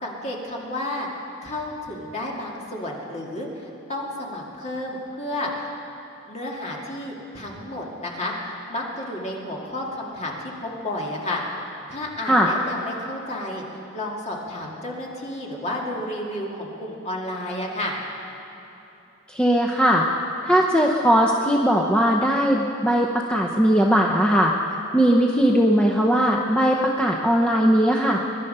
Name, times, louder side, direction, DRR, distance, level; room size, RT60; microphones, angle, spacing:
voice 1, 0.0-1.1 1.4-5.5 6.3-11.4 11.9-18.0, left 1 dB, 35° left, -2 dB, 2.2 m, -31 dB
voice 2, 19.3-20.0 20.4-24.5 24.9-28.2, equal, 5° left, -1 dB, 0.7 m, -19 dB
22.5 x 11.5 x 5.5 m, 2.9 s
head